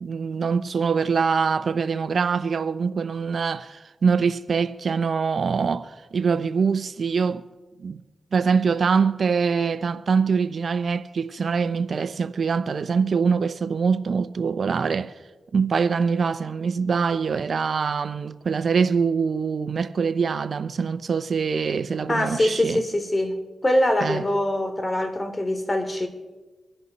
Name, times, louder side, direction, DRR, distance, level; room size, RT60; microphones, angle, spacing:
voice 1, 0.0-7.5 7.8-8.0 8.3-15.1 15.5-22.8 24.0-24.3, right 5 dB, 65° right, 0.6 m, -24 dB
voice 2, 22.1-23.3 23.6-26.1, left 1 dB, 30° left, 2.8 m, -23 dB
25.5 x 10.5 x 4.1 m
cardioid pair, 50°, 0 cm